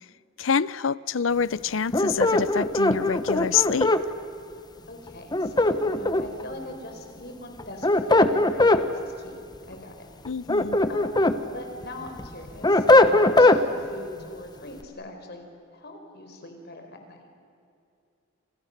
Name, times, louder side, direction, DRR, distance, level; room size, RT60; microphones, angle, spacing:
voice 1, 0.4-3.9 10.2-10.8, left 6 dB, 80° left, 19 dB, 0.7 m, -26 dB
sound 1, 1.9-4.0 5.3-6.4 7.6-8.8 10.3-11.4 11.8-13.6, left 2 dB, 20° left, 1.2 m, -20 dB
voice 2, 4.9-9.4 9.7-10.1 10.9-15.4 15.7-17.3, left 1 dB, 55° left, 4 dB, 4.7 m, -42 dB
30.0 x 27.5 x 6.7 m, 2.5 s
head